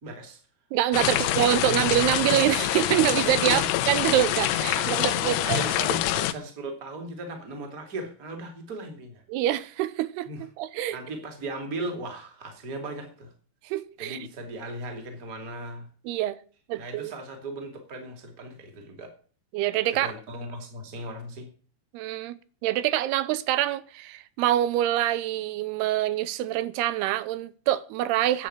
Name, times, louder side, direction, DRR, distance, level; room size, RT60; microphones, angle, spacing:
voice 1, 0.0-0.4 1.0-1.4 3.4-3.7 4.7-9.2 10.2-10.4 10.9-13.3 14.0-15.9 16.8-19.1 19.9-21.5, right 2 dB, 25° right, 2.5 m, -37 dB
voice 2, 0.7-3.6 3.9-5.6 9.3-10.3 10.6-11.0 13.6-14.2 16.1-16.4 16.7-17.1 19.5-20.1 21.9-28.5, right 13 dB, 85° right, 2.8 m, -25 dB
sound 1, 0.9-6.3, left 14 dB, 90° left, 2.8 m, -26 dB
10.0 x 8.3 x 8.7 m
omnidirectional pair, 4.6 m